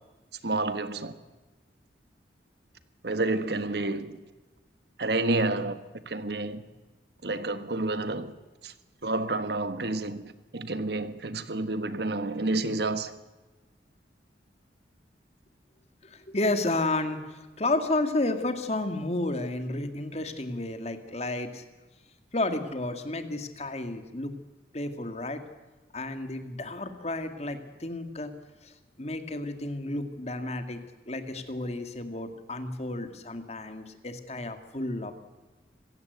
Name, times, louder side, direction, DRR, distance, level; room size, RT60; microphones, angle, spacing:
voice 1, 0.4-1.1 3.0-4.2 5.0-5.8 6.0-6.6 7.2-8.3 8.6-8.7 9.0-13.1, right 2 dB, 65° right, 1.4 m, -29 dB
voice 2, 16.0-21.6 22.3-24.4 24.7-25.4 25.9-28.3 28.6-30.8 31.1-35.1, left 2 dB, 35° left, 2.1 m, -31 dB
26.0 x 16.5 x 8.1 m
head